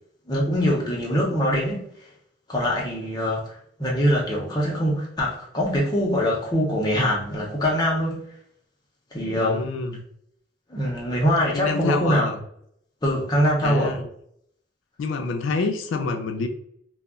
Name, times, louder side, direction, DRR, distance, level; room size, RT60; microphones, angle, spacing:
voice 1, 0.3-1.9 2.5-8.3 9.1-9.7 10.7-12.3 13.0-14.0, equal, 20° left, -3 dB, 0.6 m, -23 dB
voice 2, 9.3-10.0 11.5-12.4 13.6-14.0 15.0-16.5, left 4 dB, 85° left, 5 dB, 0.4 m, -27 dB
2.2 x 2.0 x 3.6 m, 0.70 s
head